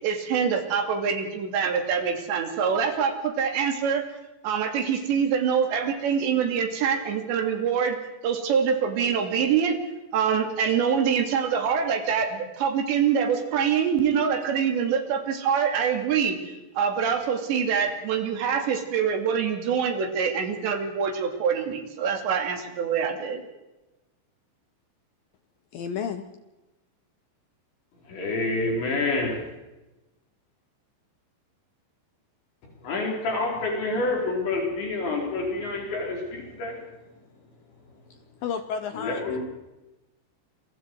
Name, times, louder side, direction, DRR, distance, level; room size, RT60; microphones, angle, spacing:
voice 1, 0.0-4.0 4.4-8.0 8.2-9.8 10.1-16.4 16.8-23.4, right 7 dB, 65° right, 5 dB, 4.7 m, -25 dB
voice 2, 25.7-26.3 38.4-39.4, left 7 dB, 85° left, 9 dB, 2.0 m, -31 dB
voice 3, 28.1-29.4 32.8-36.8 39.0-39.4, left 2 dB, 65° left, 0 dB, 6.6 m, -28 dB
28.5 x 23.5 x 4.8 m, 1.0 s
omnidirectional pair, 5.6 m